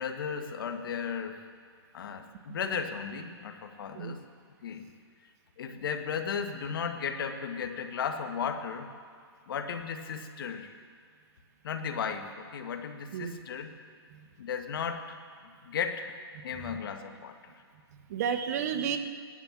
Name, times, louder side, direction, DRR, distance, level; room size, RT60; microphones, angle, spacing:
voice 1, 0.0-1.4 1.9-4.2 4.6-4.9 5.6-8.9 9.5-10.7 11.6-13.7 14.4-15.2 15.6-16.1 16.4-17.5, left 6 dB, 55° left, 6 dB, 1.6 m, -35 dB
voice 2, 17.9-19.0, right 8 dB, 40° right, 5 dB, 1.1 m, -32 dB
16.5 x 11.5 x 7.3 m, 2.2 s
hypercardioid pair, 155°, 14 cm